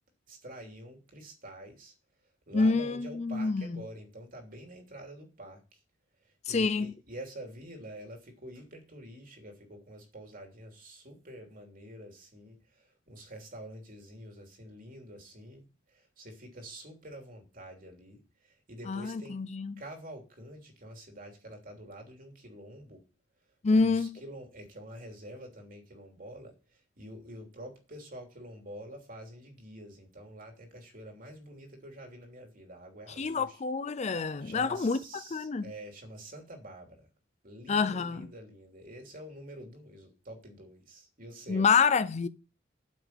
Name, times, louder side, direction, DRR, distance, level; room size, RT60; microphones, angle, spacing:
voice 1, 0.3-1.9 2.5-5.8 6.2-19.4 19.8-23.0 23.7-33.6 34.4-37.1 37.4-41.7, right 1 dB, 45° right, 3.1 m, -47 dB
voice 2, 2.5-3.8 6.5-6.9 18.9-19.8 23.6-24.2 33.2-35.0 35.3-35.7 37.7-38.3 41.5-42.3, left 4 dB, 35° left, 0.4 m, -27 dB
8.7 x 6.0 x 8.3 m
head